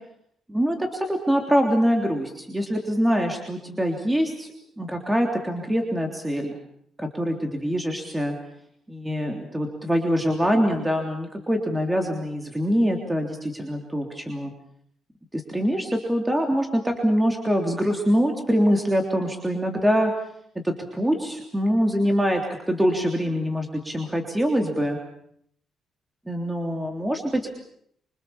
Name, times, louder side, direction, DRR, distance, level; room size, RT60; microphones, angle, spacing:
voice 1, 0.5-4.5 4.8-6.6 7.0-8.3 8.9-14.5 15.3-20.1 20.6-25.0 26.3-27.5, equal, 10° right, 3 dB, 3.4 m, -24 dB
25.5 x 25.0 x 7.2 m, 0.70 s
cardioid pair, 90°, 0 cm